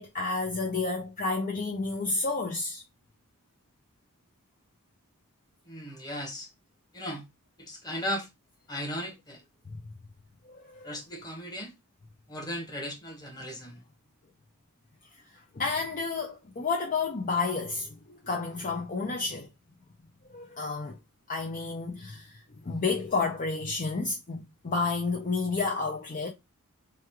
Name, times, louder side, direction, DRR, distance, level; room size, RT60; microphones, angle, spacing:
voice 1, 0.0-2.8 9.7-9.8 10.5-10.9 15.5-19.5 20.3-21.0 21.3-26.3, left 4 dB, 35° left, 0.5 m, -31 dB
voice 2, 5.7-6.5 6.9-7.3 7.6-8.3 8.7-9.4 10.8-11.7 12.3-13.8, equal, 20° left, 1.1 m, -36 dB
3.2 x 2.4 x 4.4 m
head